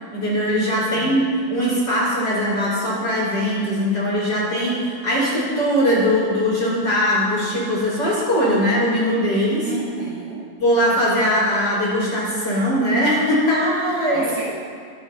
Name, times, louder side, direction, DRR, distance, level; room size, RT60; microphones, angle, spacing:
voice 1, 0.1-1.2 1.5-9.7 10.6-14.3, equal, 25° left, -6 dB, 5.3 m, -20 dB
voice 2, 0.8-1.2 9.6-10.5 14.1-14.5, right 3 dB, 55° right, -6 dB, 4.4 m, -31 dB
24.5 x 15.5 x 2.8 m, 2.2 s
omnidirectional pair, 4.6 m